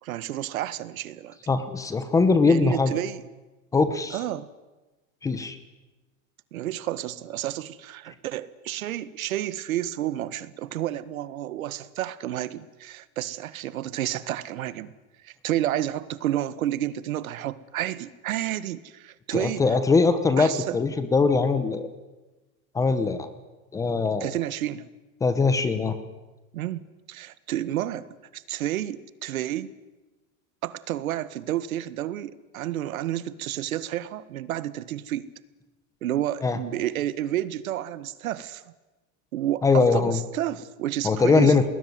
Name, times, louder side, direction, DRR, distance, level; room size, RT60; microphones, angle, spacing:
voice 1, 0.0-1.4 2.4-3.2 4.1-4.5 6.5-14.9 15.2-19.8 20.4-20.8 24.2-24.8 26.5-29.7 30.6-35.3 36.0-38.6 39.3-41.6, right 12 dB, 80° right, 1.8 m, -30 dB
voice 2, 1.5-3.0 3.7-4.2 5.2-5.6 19.3-21.9 22.7-23.3 23.7-24.3 25.2-26.0 36.4-36.6 39.6-40.2 41.0-41.6, left 4 dB, 10° left, 1.0 m, -21 dB
29.5 x 20.0 x 9.6 m
supercardioid pair, 175°, 41 cm